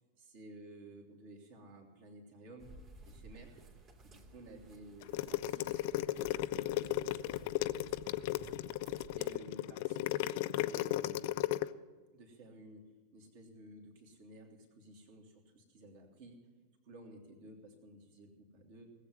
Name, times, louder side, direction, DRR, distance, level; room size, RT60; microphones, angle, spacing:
voice 1, 0.3-2.7 3.1-3.6 4.0-8.5 9.2-11.6 12.1-12.8 13.1-16.4 16.8-18.9, right 1 dB, 50° right, 1 dB, 2.8 m, -54 dB
sound 1, 2.6-9.4, right 3 dB, 35° right, 2.3 m, -56 dB
sound 2, 5.0-11.7, left 16 dB, 50° left, 0.5 m, -34 dB
18.5 x 8.2 x 7.5 m, 1.3 s
figure-of-eight pair, 90°, 0 cm